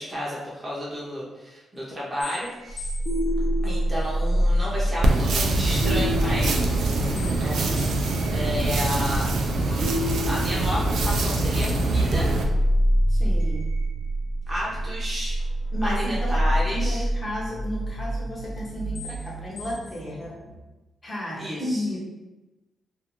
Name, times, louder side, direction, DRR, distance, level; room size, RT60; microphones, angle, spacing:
voice 1, 0.0-2.9 3.6-7.0 7.3-7.6 8.3-12.3 14.5-15.4 15.8-17.1 21.4-21.8, equal, 15° right, -8 dB, 0.6 m, -32 dB
sound 1, 2.2-20.6, equal, 65° left, 0.7 m, -27 dB
sound 2, 5.0-12.4, right 2 dB, 65° right, 0.3 m, -24 dB
voice 2, 7.0-7.6 13.1-13.6 15.7-16.4 16.7-20.3 21.0-22.0, equal, 25° left, -5 dB, 0.7 m, -33 dB
2.5 x 2.4 x 2.8 m, 1.1 s
wide cardioid pair, 175°, 0 cm